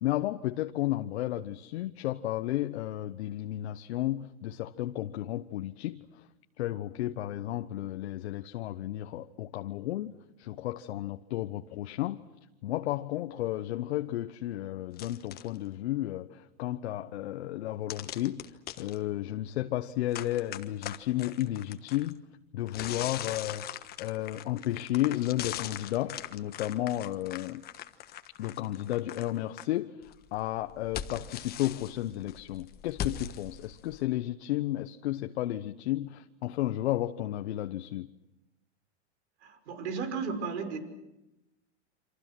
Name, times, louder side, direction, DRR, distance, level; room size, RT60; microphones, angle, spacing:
voice 1, 0.0-6.3 6.6-12.2 12.6-18.4 18.8-22.2 22.5-23.7 24.0-27.6 28.4-38.1, left 14 dB, 70° left, 1.1 m, -33 dB
sound 1, 14.9-15.6 17.9-19.0 20.1-22.1 22.7-29.6 30.0-34.0, left 10 dB, 25° left, 1.3 m, -40 dB
voice 2, 39.4-40.8, right 5 dB, 70° right, 6.0 m, -34 dB
28.5 x 26.0 x 6.2 m
hypercardioid pair, 135°, 35 cm